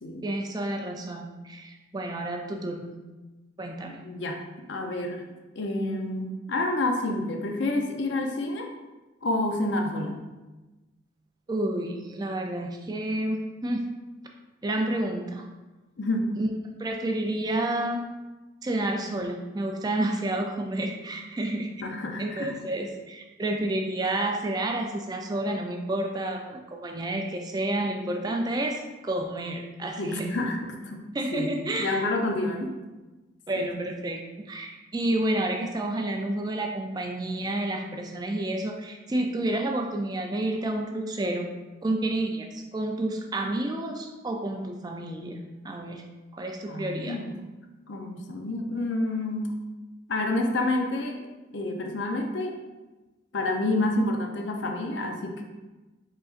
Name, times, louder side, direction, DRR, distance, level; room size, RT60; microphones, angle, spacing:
voice 1, 0.2-2.9 3.6-4.0 11.5-13.9 14.6-15.4 16.4-16.5 16.8-18.0 18.6-21.7 22.2-30.3 31.1-32.0 33.5-34.2 34.5-41.5 41.8-46.0 46.3-47.2, right 1 dB, 20° right, 3 dB, 0.3 m, -30 dB
voice 2, 3.9-4.4 4.7-5.3 5.6-8.7 9.2-10.2 16.0-16.3 21.8-22.6 30.0-31.0 31.3-31.5 31.8-32.7 33.6-33.7 46.7-47.3 47.9-49.5 50.1-51.2 51.5-52.5 53.3-55.4, left 2 dB, 60° left, 3 dB, 0.6 m, -28 dB
5.0 x 3.9 x 2.4 m, 1.2 s
head